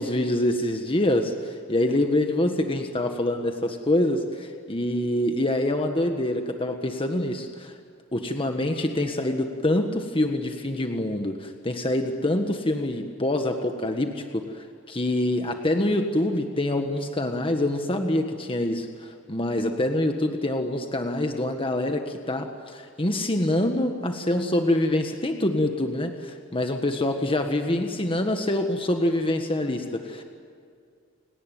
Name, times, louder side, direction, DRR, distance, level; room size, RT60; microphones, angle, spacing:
voice 1, 0.0-7.8 8.1-30.2, left 1 dB, 25° left, 5 dB, 1.5 m, -25 dB
30.0 x 18.5 x 9.3 m, 2.4 s
head